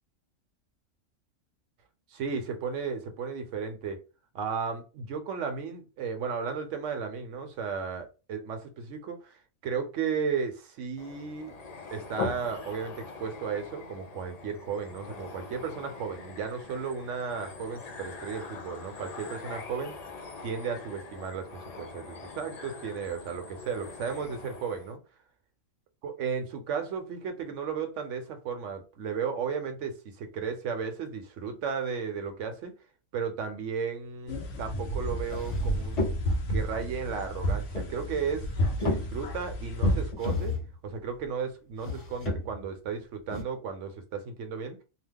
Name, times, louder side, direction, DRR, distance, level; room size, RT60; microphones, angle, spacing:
voice 1, 2.1-4.0 4.3-11.6 11.9-19.9 20.4-25.0 26.0-32.7 33.1-38.5 38.8-40.6 40.8-44.8, right 6 dB, 70° right, 1.0 m, -34 dB
sound 1, 11.0-24.9, left 4 dB, 55° left, 0.4 m, -42 dB
sound 2, 34.3-40.1, equal, 70° left, 1.0 m, -31 dB
sound 3, 34.7-34.8 35.1-36.6 37.6-38.4 38.7-39.5 40.1-40.8 41.8-42.7 43.3-43.4, left 2 dB, 35° left, 1.1 m, -33 dB
2.8 x 2.1 x 3.5 m
omnidirectional pair, 1.4 m